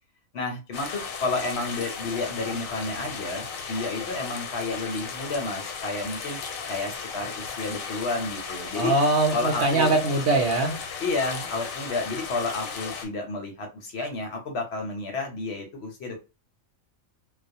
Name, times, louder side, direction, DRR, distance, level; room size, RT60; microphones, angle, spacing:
voice 1, 0.3-6.4 6.7-8.9 9.3-9.9 11.0-16.2, left 3 dB, 60° left, 3 dB, 0.8 m, -31 dB
sound 1, 0.7-13.1, left 5 dB, 80° left, 1.0 m, -36 dB
voice 2, 8.7-10.8, right 2 dB, 65° right, 2 dB, 0.8 m, -22 dB
2.3 x 2.0 x 2.6 m, 0.28 s
omnidirectional pair, 1.4 m